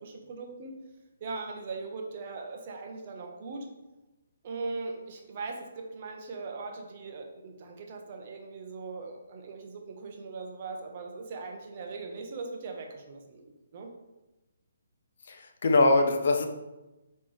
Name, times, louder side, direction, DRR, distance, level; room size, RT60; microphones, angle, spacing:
voice 1, 0.0-0.7 1.2-3.7 4.4-13.9, right 3 dB, 45° right, 2 dB, 1.1 m, -40 dB
voice 2, 15.3-16.5, left 2 dB, 60° left, 5 dB, 0.8 m, -23 dB
8.6 x 3.3 x 3.5 m, 1.0 s
hypercardioid pair, 150°, 0 cm